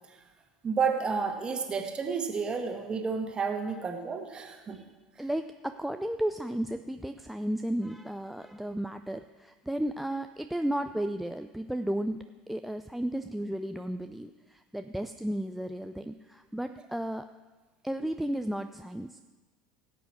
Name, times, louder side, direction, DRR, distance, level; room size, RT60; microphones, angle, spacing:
voice 1, 0.6-4.8, right 5 dB, 25° right, 4 dB, 1.7 m, -31 dB
voice 2, 5.2-17.3 17.8-19.2, right 1 dB, 5° right, 7 dB, 0.4 m, -34 dB
17.5 x 8.2 x 4.6 m, 1.3 s
figure-of-eight pair, 70°, 4 cm